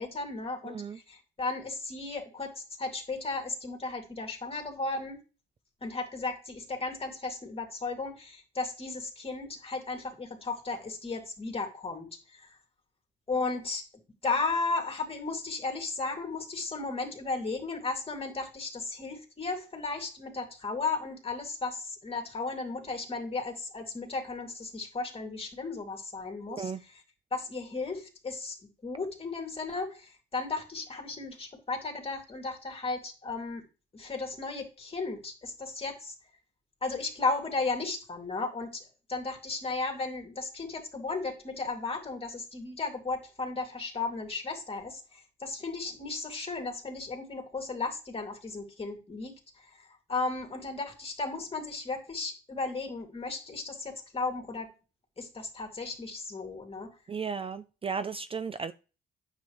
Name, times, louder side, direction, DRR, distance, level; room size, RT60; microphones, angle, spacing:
voice 1, 0.0-0.8 1.1-5.2 5.8-12.6 13.3-13.8 14.2-27.0 27.3-28.6 28.8-33.6 33.9-36.1 36.8-54.7 55.2-56.9, left 3 dB, 30° left, 2.6 m, -35 dB
voice 2, 0.6-1.0 26.5-26.8 57.1-58.7, right 5 dB, 30° right, 0.4 m, -35 dB
9.3 x 7.7 x 3.1 m
cardioid pair, 90°, 20 cm